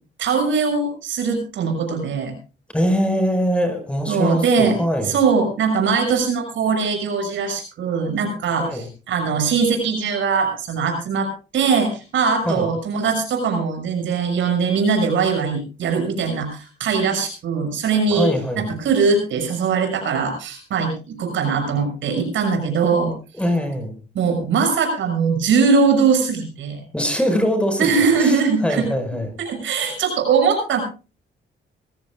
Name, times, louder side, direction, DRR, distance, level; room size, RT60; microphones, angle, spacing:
voice 1, 0.2-2.3 4.1-4.8 5.1-18.3 18.6-23.1 24.1-26.8 27.8-28.9 29.4-30.8, right 5 dB, 75° right, 5 dB, 6.4 m, -21 dB
voice 2, 2.7-5.1 8.6-8.9 12.5-12.7 18.1-18.7 23.3-24.0 26.9-29.3, equal, 5° left, 6 dB, 5.2 m, -22 dB
25.0 x 16.0 x 2.4 m, 0.33 s
cardioid pair, 90°, 20 cm